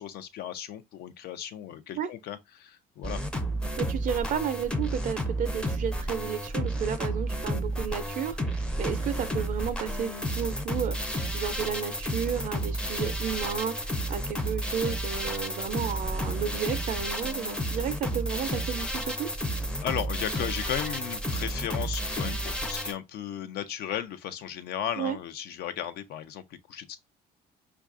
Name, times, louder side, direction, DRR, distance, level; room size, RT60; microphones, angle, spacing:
voice 1, 0.0-3.2 19.8-27.0, left 10 dB, 70° left, 0.6 m, -35 dB
sound 1, 3.0-22.9, right 1 dB, 5° left, 0.5 m, -31 dB
voice 2, 3.8-19.3 25.0-25.2, right 8 dB, 55° right, 0.4 m, -32 dB
4.6 x 2.3 x 2.4 m
cardioid pair, 110°, 17 cm